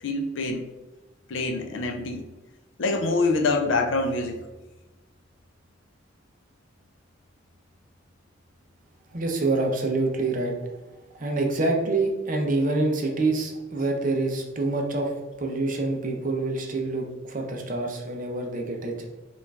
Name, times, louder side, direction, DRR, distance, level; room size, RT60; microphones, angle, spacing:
voice 1, 0.0-0.6 1.3-2.3 2.8-4.4, left 3 dB, 70° left, 5 dB, 0.5 m, -25 dB
voice 2, 9.1-10.6 11.2-15.1 15.4-19.1, right 2 dB, 45° right, 2 dB, 0.7 m, -26 dB
5.7 x 2.5 x 3.3 m, 1.1 s
head